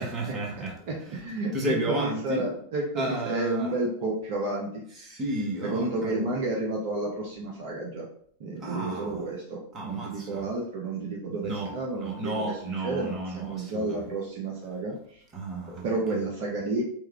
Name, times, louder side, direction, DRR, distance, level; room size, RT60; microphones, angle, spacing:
voice 1, 0.0-0.7 1.5-2.5 3.0-3.7 5.0-6.3 8.6-9.2 9.7-10.4 11.4-11.7 12.0-14.0 15.3-15.9 16.1-16.2, right 1 dB, 25° right, -1 dB, 0.9 m, -32 dB
voice 2, 0.6-5.2 5.6-8.1 8.4-15.2 15.8-16.9, right 2 dB, 50° right, -2 dB, 0.5 m, -31 dB
3.1 x 2.3 x 3.3 m, 0.63 s
figure-of-eight pair, 90°, 0 cm